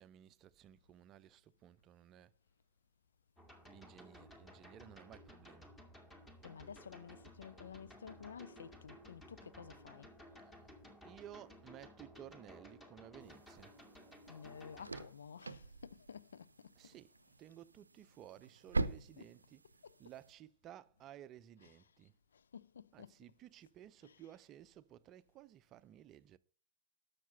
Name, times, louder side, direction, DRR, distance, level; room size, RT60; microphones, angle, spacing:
voice 1, 0.0-2.3 3.7-5.7 10.4-10.6 11.0-13.7 16.8-17.1 17.4-19.6 20.0-22.1 22.9-26.4, right 11 dB, 35° right, 0.5 m, -56 dB
sound 1, 3.4-15.1, equal, 15° left, 2.0 m, -57 dB
voice 2, 6.4-10.1 14.3-16.7 19.2-19.3 19.8-20.0 22.3-23.1 24.0-24.2, left 7 dB, 70° left, 0.4 m, -52 dB
sound 2, 13.2-20.3, right 3 dB, 80° right, 0.6 m, -44 dB
12.0 x 6.7 x 5.4 m
figure-of-eight pair, 90°, 0 cm